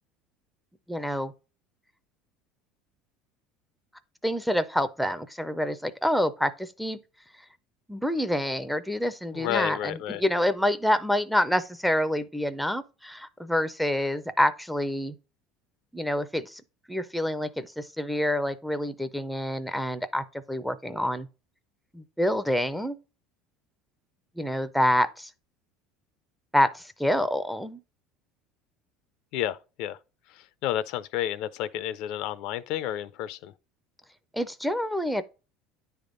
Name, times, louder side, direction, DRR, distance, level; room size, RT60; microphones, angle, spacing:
voice 1, 0.9-1.3 4.2-7.0 7.9-15.2 15.9-16.6 16.9-21.3 21.9-23.0 24.4-25.3 26.5-27.8 34.3-35.2, left 1 dB, ahead, 0.5 m, -27 dB
voice 2, 9.3-10.2 29.3-30.0 30.3-33.5, left 12 dB, 60° left, 0.5 m, -31 dB
9.8 x 3.5 x 3.8 m
cardioid pair, 150°, 0 cm